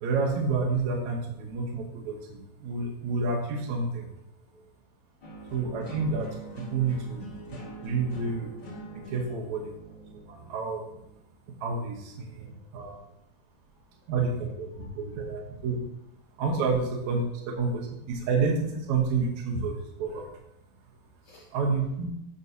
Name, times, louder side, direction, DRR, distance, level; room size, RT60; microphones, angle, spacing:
voice 1, 0.0-4.1 5.5-6.3 6.6-8.5 8.9-10.8 11.6-13.0 14.1-15.8 16.4-20.3 21.5-22.1, right 4 dB, 70° right, -2 dB, 2.2 m, -29 dB
voice 2, 4.3-4.7 5.2-5.5 12.4-13.0 13.7-14.5 14.8-15.2 21.2-21.7, left 2 dB, 65° left, -8 dB, 2.8 m, -61 dB
sound 1, 5.2-11.2, right 3 dB, 35° left, 2.3 m, -44 dB
11.0 x 6.3 x 2.7 m, 0.83 s
omnidirectional pair, 3.8 m